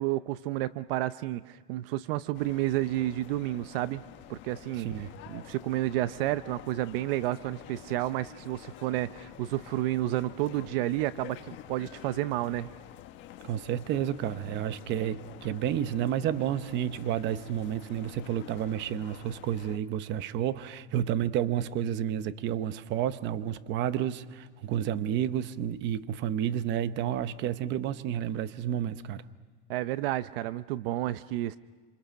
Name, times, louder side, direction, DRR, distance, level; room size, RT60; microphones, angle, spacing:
voice 1, 0.0-4.0 4.3-12.7 29.7-31.6, right 15 dB, 65° right, 15 dB, 0.7 m, -31 dB
sound 1, 2.3-19.8, left 11 dB, 40° left, 1.5 m, -48 dB
voice 2, 4.8-5.1 13.4-29.2, right 10 dB, 35° right, 13 dB, 0.9 m, -30 dB
27.5 x 27.0 x 6.4 m, 1.5 s
supercardioid pair, 155°, 31 cm